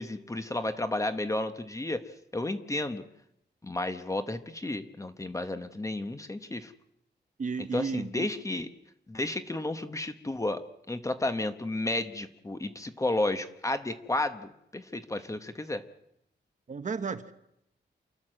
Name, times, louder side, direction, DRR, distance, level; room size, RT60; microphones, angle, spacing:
voice 1, 0.0-2.0 2.3-3.0 3.6-6.7 7.7-8.7 9.1-10.6 10.9-15.8, left 2 dB, 15° left, 9 dB, 1.0 m, -32 dB
voice 2, 7.4-8.3 16.7-17.3, right 5 dB, 40° right, 10 dB, 1.1 m, -33 dB
28.5 x 12.5 x 7.7 m, 0.80 s
wide cardioid pair, 175°, 19 cm